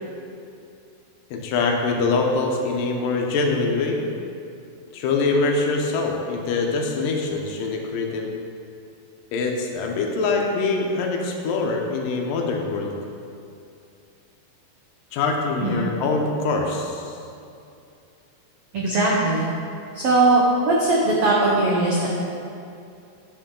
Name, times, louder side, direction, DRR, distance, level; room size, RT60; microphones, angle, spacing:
voice 1, 1.3-4.0 4.9-8.3 9.3-12.9 15.1-17.1, left 3 dB, 75° left, 1 dB, 2.5 m, -24 dB
voice 2, 18.7-19.4 19.9-22.1, right 2 dB, 75° right, -5 dB, 1.3 m, -19 dB
9.5 x 8.7 x 3.8 m, 2.6 s
omnidirectional pair, 4.2 m